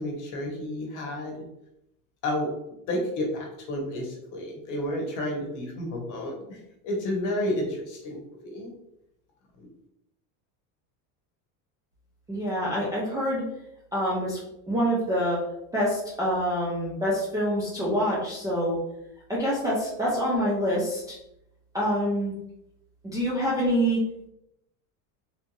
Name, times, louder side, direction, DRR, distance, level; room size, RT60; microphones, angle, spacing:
voice 1, 0.0-1.3 2.2-2.5 2.9-6.6 6.8-8.7 9.6-9.7, left 1 dB, 45° left, 0 dB, 1.0 m, -31 dB
voice 2, 12.3-13.4 13.9-14.4 14.7-15.4 15.7-18.8 19.3-21.1 21.7-22.3 23.1-24.0, equal, 10° right, -8 dB, 0.4 m, -26 dB
3.4 x 2.5 x 3.0 m, 0.82 s
supercardioid pair, 155°, 42 cm